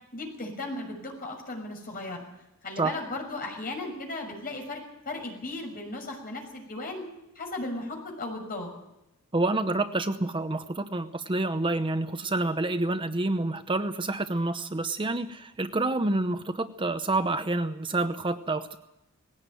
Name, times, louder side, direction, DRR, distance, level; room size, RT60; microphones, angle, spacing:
voice 1, 0.1-2.2 2.6-4.8 5.0-7.0 7.3-8.7, left 2 dB, 40° left, 2 dB, 6.3 m, -36 dB
voice 2, 9.3-18.8, right 2 dB, 25° right, 9 dB, 0.8 m, -28 dB
19.5 x 17.5 x 9.2 m, 0.90 s
head